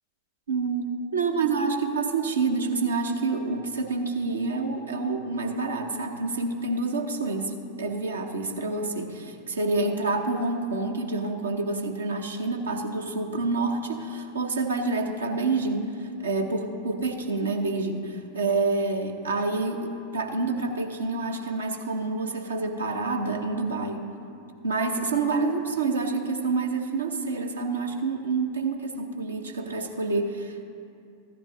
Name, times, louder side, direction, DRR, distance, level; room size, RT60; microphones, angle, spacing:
voice 1, 0.5-24.0 24.6-30.6, right 3 dB, 70° right, 4 dB, 0.8 m, -28 dB
14.5 x 10.0 x 2.7 m, 2.5 s
figure-of-eight pair, 90°, 0 cm